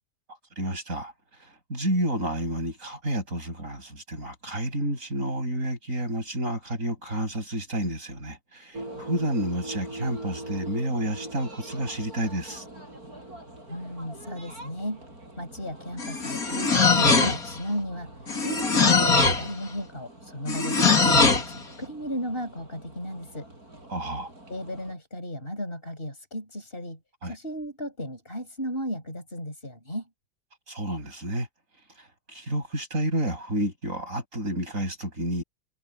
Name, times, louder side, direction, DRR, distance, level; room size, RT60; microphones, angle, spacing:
voice 1, 0.6-1.1 1.4-12.6 23.9-24.3 27.2-27.3 30.7-31.5 32.0-35.4, right 1 dB, 65° right, 8.4 m, -30 dB
sound 1, 8.7-24.9, right 1 dB, 90° right, 8.7 m, -43 dB
voice 2, 13.7-15.0 15.4-18.1 18.4-23.5 24.5-30.1, equal, 40° left, 7.3 m, -35 dB
sound 2, 16.0-17.6 18.3-19.5 20.5-21.5, left 4 dB, 75° left, 3.3 m, -21 dB
omnidirectional pair, 1.5 m